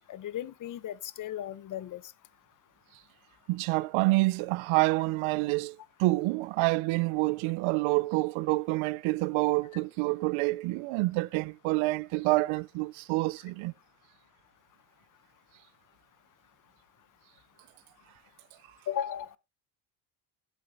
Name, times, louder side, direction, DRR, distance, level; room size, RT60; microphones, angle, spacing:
voice 1, 0.1-2.0 18.9-19.3, left 10 dB, 40° left, 0.8 m, -36 dB
voice 2, 3.5-13.7, right 22 dB, 75° right, 0.6 m, -27 dB
12.5 x 8.4 x 2.6 m
cardioid pair, 125°, 49 cm